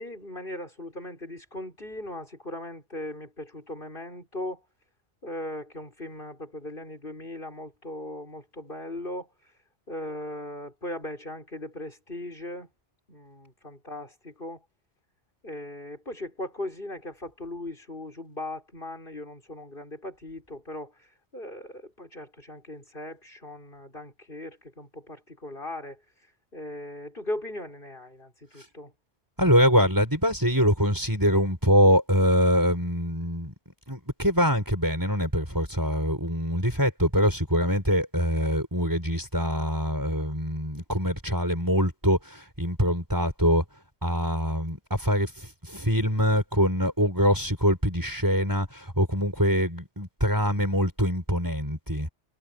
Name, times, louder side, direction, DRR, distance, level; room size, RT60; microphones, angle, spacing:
voice 1, 0.0-4.6 5.2-9.5 9.9-12.7 13.1-14.6 15.4-28.9, left 1 dB, 50° left, 6.4 m, -38 dB
voice 2, 29.4-43.6 44.0-52.1, equal, 15° right, 6.9 m, -24 dB
omnidirectional pair, 1.2 m